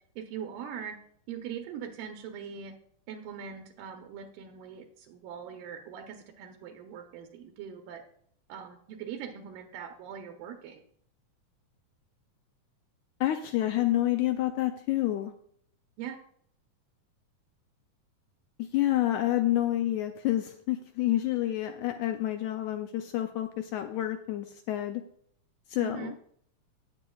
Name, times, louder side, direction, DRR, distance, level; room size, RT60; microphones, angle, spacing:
voice 1, 0.2-1.0 1.3-2.7 3.1-8.0 8.5-10.8 16.0-16.2 25.8-26.1, right 8 dB, 80° right, 4 dB, 2.4 m, -41 dB
voice 2, 13.2-15.3 18.6-25.0 25.7-26.2, left 14 dB, 80° left, 7 dB, 1.8 m, -28 dB
17.0 x 7.5 x 2.3 m, 0.63 s
omnidirectional pair, 3.9 m